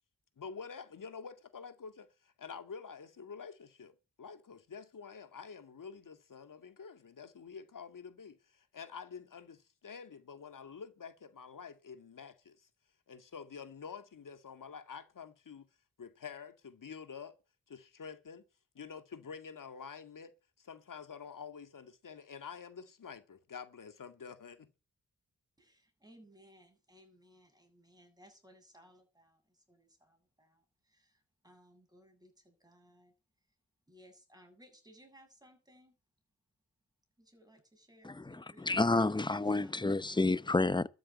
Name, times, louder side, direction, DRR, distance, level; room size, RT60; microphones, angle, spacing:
voice 1, 0.4-3.9 4.2-12.6 13.1-15.7 16.0-17.4 17.7-18.4 18.7-24.7, left 6 dB, 70° left, 2.2 m, -48 dB
voice 2, 25.6-33.1 33.9-36.0 37.2-39.8, equal, 10° right, 7.9 m, -62 dB
voice 3, 38.0-40.9, left 2 dB, 15° left, 0.8 m, -30 dB
13.0 x 7.8 x 8.7 m
cardioid pair, 65°, 34 cm